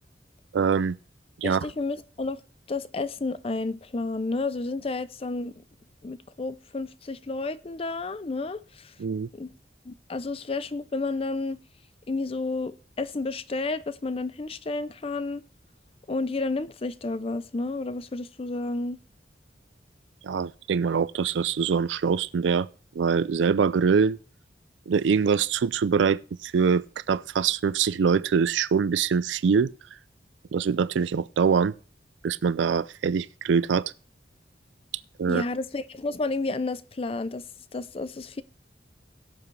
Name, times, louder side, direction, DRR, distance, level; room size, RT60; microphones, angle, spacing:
voice 1, 0.5-1.0 1.4-1.7 9.0-9.3 20.2-22.7 22.9-24.2 24.9-29.7 30.5-31.7 32.2-33.9 35.2-35.4, right 6 dB, 85° right, 0.4 m, -24 dB
voice 2, 1.4-2.4 2.7-5.6 6.0-8.9 9.3-9.5 9.9-11.6 12.1-15.4 16.1-19.0 35.3-37.4 37.7-38.4, left 3 dB, 30° left, 0.5 m, -31 dB
17.0 x 7.1 x 3.2 m
head